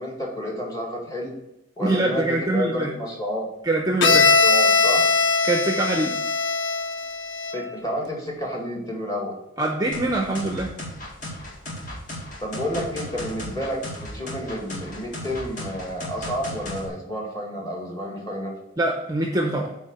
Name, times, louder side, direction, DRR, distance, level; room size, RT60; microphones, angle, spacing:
voice 1, 0.0-1.3 1.8-3.5 3.9-5.1 7.5-9.3 12.4-18.5, equal, 15° left, -2 dB, 1.9 m, -30 dB
voice 2, 1.8-2.9 3.6-4.3 5.4-6.2 9.6-10.7 18.8-19.7, right 2 dB, 20° right, 2 dB, 0.6 m, -24 dB
Bowed string instrument, 4.0-7.7, left 4 dB, 55° left, 0.5 m, -20 dB
sound 1, 9.9-16.9, left 1 dB, 40° left, 2.0 m, -35 dB
8.8 x 3.6 x 6.5 m, 0.90 s
head